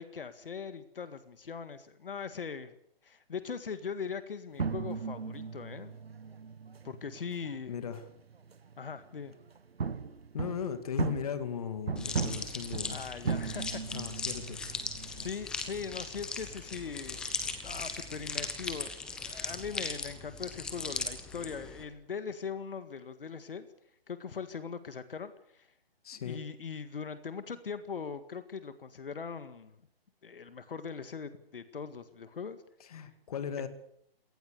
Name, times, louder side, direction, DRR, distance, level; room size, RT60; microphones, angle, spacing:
voice 1, 0.0-2.8 3.0-6.0 6.8-7.8 8.8-9.3 12.9-14.1 15.2-17.3 17.6-18.9 19.2-23.7 24.1-25.7 26.1-29.7 30.2-32.6 32.9-33.1, left 6 dB, 65° left, 11 dB, 1.9 m, -40 dB
sound 1, 4.6-8.9 9.2-15.3, right 5 dB, 85° right, 1.6 m, -37 dB
voice 2, 7.7-8.0 10.3-13.0 13.9-14.6 15.1-15.2 26.0-26.4 32.8-33.7, left 7 dB, 40° left, 10 dB, 2.4 m, -37 dB
sound 2, 12.0-21.8, left 4 dB, 5° left, 0.8 m, -39 dB
28.0 x 18.5 x 6.8 m, 0.70 s
hypercardioid pair, 165°, 30 cm